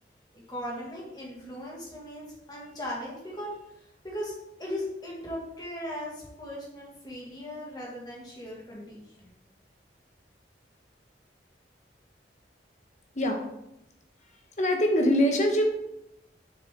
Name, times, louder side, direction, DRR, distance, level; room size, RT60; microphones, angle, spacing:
voice 1, 0.3-4.3 4.6-9.3, equal, 25° left, -4 dB, 1.9 m, -38 dB
voice 2, 14.6-15.6, equal, 40° left, 3 dB, 1.1 m, -23 dB
6.6 x 6.4 x 3.6 m, 0.84 s
head